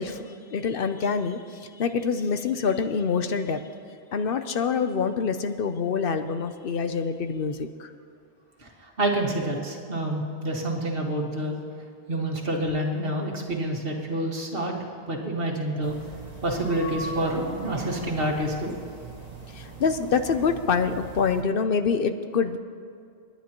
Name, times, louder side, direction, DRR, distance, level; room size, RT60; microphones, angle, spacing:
voice 1, 0.0-3.6 4.1-7.9 16.1-16.3 19.5-22.6, left 5 dB, 65° left, 9 dB, 0.8 m, -26 dB
voice 2, 9.0-11.6 12.1-14.7 15.1-16.0 16.4-18.8, right 1 dB, 65° right, 0 dB, 1.9 m, -27 dB
sound 1, 15.8-21.4, right 5 dB, 40° right, 1.8 m, -43 dB
30.0 x 10.0 x 3.0 m, 2.3 s
omnidirectional pair, 1.0 m